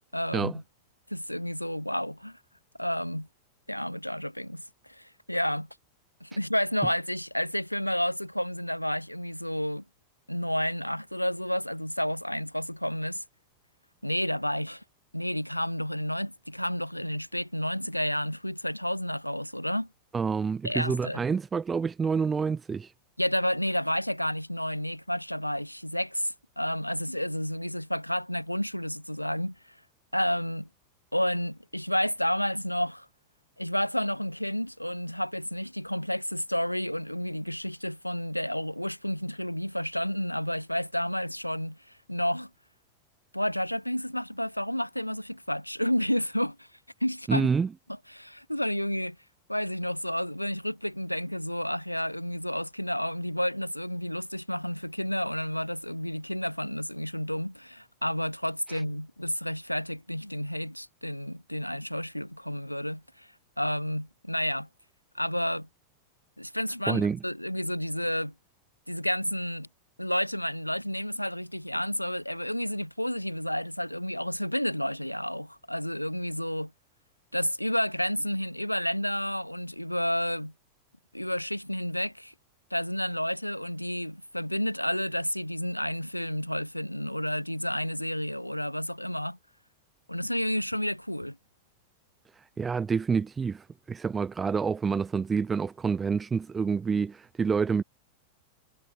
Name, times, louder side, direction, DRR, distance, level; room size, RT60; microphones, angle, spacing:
voice 1, 0.1-0.6 1.1-2.4 2.8-3.3 3.7-5.7 6.2-9.8 10.3-13.2 14.0-14.8 15.1-19.9 20.6-21.2 23.2-29.6 30.1-30.7 31.1-33.1 33.6-41.8 42.1-42.5 43.3-46.7 47.0-47.5 48.1-49.2 49.5-63.3 63.6-64.7 65.1-65.7 66.4-68.3 68.9-69.7 70.0-76.7 77.3-80.5 81.1-82.3 82.7-89.4 90.1-91.4, equal, 90° left, 3.5 m, -30 dB
voice 2, 20.1-22.9 47.3-47.7 58.7-58.8 66.9-67.2 92.4-97.8, right 5 dB, 15° right, 0.7 m, -28 dB
figure-of-eight pair, 90°, 0 cm